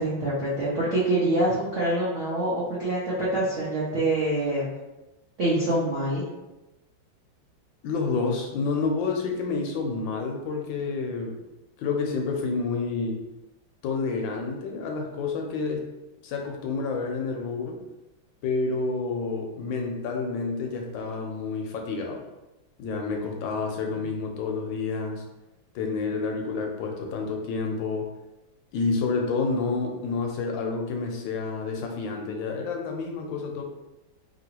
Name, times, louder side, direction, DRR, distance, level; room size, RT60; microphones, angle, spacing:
voice 1, 0.0-4.7 5.4-6.2, right 1 dB, 70° right, -7 dB, 0.7 m, -25 dB
voice 2, 7.8-11.4 11.8-13.2 13.8-15.8 16.2-17.8 18.4-22.2 22.8-25.2 25.7-28.1 28.7-33.6, left 4 dB, 80° left, 2 dB, 1.3 m, -29 dB
2.9 x 2.9 x 2.8 m, 1.0 s
omnidirectional pair, 2.2 m